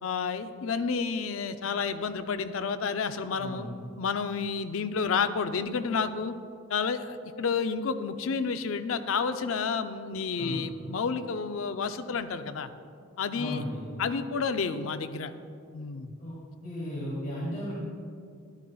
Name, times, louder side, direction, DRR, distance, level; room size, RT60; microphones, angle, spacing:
voice 1, 0.0-3.7 4.0-6.3 6.7-12.7 13.2-13.6 14.0-15.3 15.7-16.1, left 5 dB, 80° left, 10 dB, 0.5 m, -30 dB
voice 2, 3.4-3.7 10.4-10.6 13.4-13.9 16.2-16.4 16.6-17.7, equal, 40° left, -7 dB, 1.8 m, -35 dB
11.5 x 11.0 x 2.3 m, 2.3 s
head